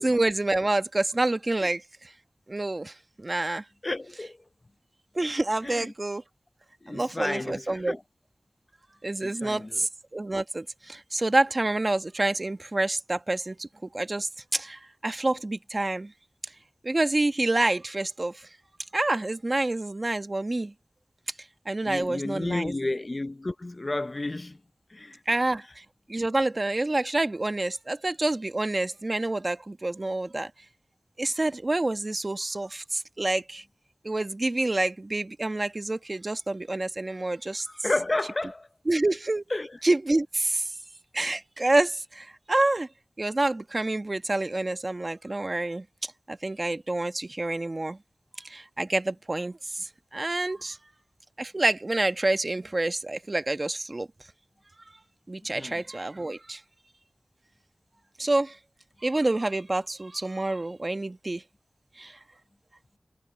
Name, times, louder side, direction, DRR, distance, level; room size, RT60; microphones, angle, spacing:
voice 1, 0.0-1.8 2.5-3.6 5.1-6.2 6.9-8.0 9.0-13.7 13.9-16.1 16.8-18.5 18.9-20.7 21.6-22.7 25.3-25.8 26.1-30.5 31.2-33.6 34.0-37.7 38.9-39.4 39.8-40.7 41.1-42.9 43.2-48.0 48.4-50.8 51.4-54.1 55.3-56.6 58.2-58.6 59.0-61.4 62.0-62.2, right 2 dB, 45° right, 1.2 m, -28 dB
voice 2, 3.8-4.4 5.6-5.9 6.8-8.0 9.2-9.9 21.8-24.6 24.9-25.4 37.7-38.7 39.5-39.8 55.5-55.8, left 2 dB, 45° left, 0.7 m, -32 dB
wide cardioid pair, 50°, 0 cm